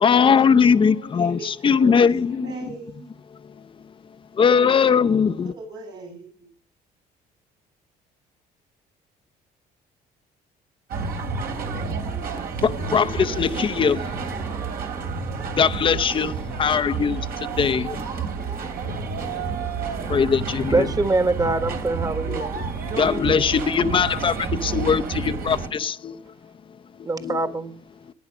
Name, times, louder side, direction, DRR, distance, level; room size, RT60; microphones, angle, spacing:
voice 1, 0.0-2.5 4.4-5.5 12.6-14.0 15.6-17.2 17.6-17.9 20.1-20.9 23.0-26.2 27.2-27.5, left 6 dB, 30° left, 0.7 m, -20 dB
voice 2, 0.8-2.1 2.4-3.1 5.0-6.5, right 3 dB, 80° right, 7.9 m, -39 dB
sound 1, 10.9-25.7, right 5 dB, 65° right, 2.9 m, -30 dB
voice 3, 20.7-22.6 27.1-27.7, right 3 dB, 20° right, 1.6 m, -23 dB
15.5 x 9.5 x 6.1 m
cardioid pair, 110°, 17 cm